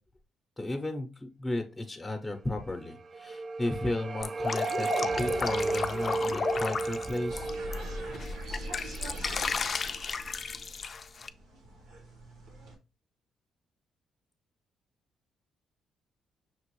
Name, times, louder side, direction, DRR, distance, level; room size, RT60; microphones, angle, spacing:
voice 1, 0.6-7.5, left 1 dB, 10° left, 4 dB, 0.7 m, -34 dB
sound 1, 2.8-9.8, right 3 dB, 45° right, 0.3 m, -34 dB
Drip, 4.2-7.7 8.1-11.3, left 5 dB, 40° left, 0.4 m, -34 dB
sound 2, 7.3-12.8, equal, 90° right, 1.4 m, -42 dB
5.9 x 2.4 x 3.0 m, 0.30 s
cardioid pair, 90°, 0 cm